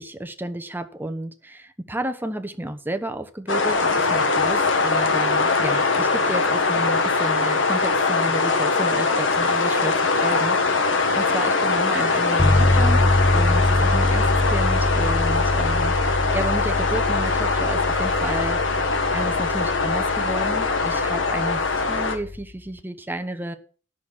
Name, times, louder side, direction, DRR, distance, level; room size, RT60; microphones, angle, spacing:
voice 1, 0.0-13.1 13.3-18.6 19.1-21.6 21.9-23.5, right 1 dB, 10° right, 1.0 m, -31 dB
sound 1, 3.5-22.2, left 3 dB, 75° left, 1.6 m, -22 dB
sound 2, 12.4-22.5, left 2 dB, 15° left, 0.4 m, -24 dB
11.0 x 6.4 x 7.3 m
head